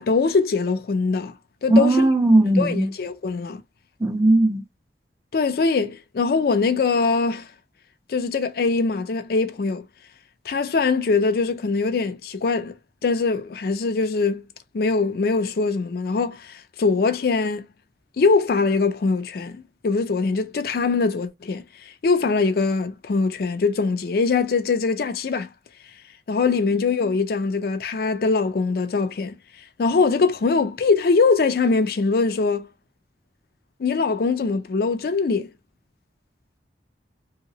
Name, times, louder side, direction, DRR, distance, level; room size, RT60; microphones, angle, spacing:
voice 1, 0.0-1.3 1.6-2.1 2.5-3.6 5.3-7.5 8.1-9.9 10.5-12.7 13.0-14.4 14.7-17.7 18.2-25.5 26.3-29.4 29.8-32.7 33.8-35.5, left 4 dB, 55° left, 0.4 m, -22 dB
voice 2, 1.7-2.9 4.0-4.6, right 2 dB, 15° right, 0.4 m, -17 dB
2.8 x 2.8 x 2.8 m
head